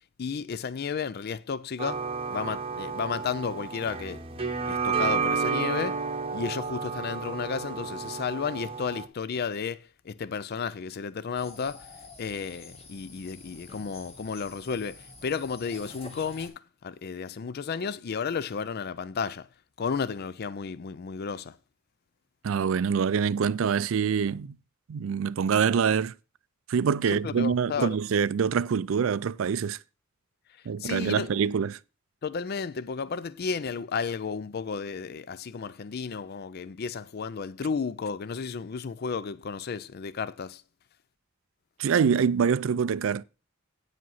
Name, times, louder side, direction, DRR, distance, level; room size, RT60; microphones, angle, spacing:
voice 1, 0.2-2.0 2.3-6.0 6.3-11.9 12.2-19.5 19.8-21.6 27.1-28.0 30.8-31.3 32.2-40.6, left 5 dB, 50° left, 0.4 m, -33 dB
sound 1, 1.8-9.1, right 5 dB, 30° right, 0.9 m, -31 dB
sound 2, 11.3-16.5, left 2 dB, 30° left, 1.5 m, -48 dB
voice 2, 22.4-24.5 24.9-26.1 26.7-29.8 30.7-31.8 41.8-43.2, right 6 dB, 70° right, 0.4 m, -25 dB
9.3 x 5.1 x 5.6 m
head